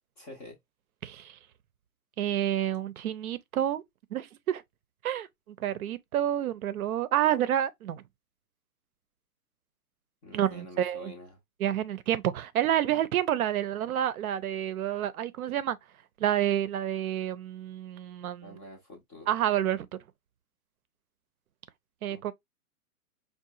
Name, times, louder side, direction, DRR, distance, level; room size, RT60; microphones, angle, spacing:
voice 1, 0.2-0.6 10.2-11.4 18.4-19.3 22.1-22.2, left 1 dB, 10° left, 0.4 m, -47 dB
voice 2, 1.0-1.3 2.2-3.8 4.1-4.6 5.0-5.3 5.6-8.0 10.3-11.1 11.6-15.8 16.2-18.6 19.3-19.9 22.0-22.3, right 11 dB, 70° right, 0.6 m, -29 dB
4.8 x 2.3 x 2.6 m
hypercardioid pair, 140°, 45 cm